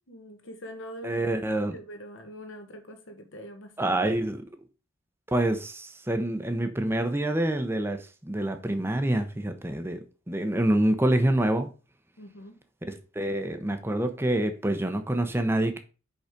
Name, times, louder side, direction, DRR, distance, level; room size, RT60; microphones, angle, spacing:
voice 1, 0.1-1.2 1.6-4.0 12.2-12.6, equal, 70° left, 1.5 m, -43 dB
voice 2, 1.0-1.8 3.8-4.4 5.3-8.0 8.2-10.0 10.3-11.7 12.9-15.8, right 1 dB, 10° right, 0.8 m, -26 dB
5.4 x 4.9 x 5.1 m
head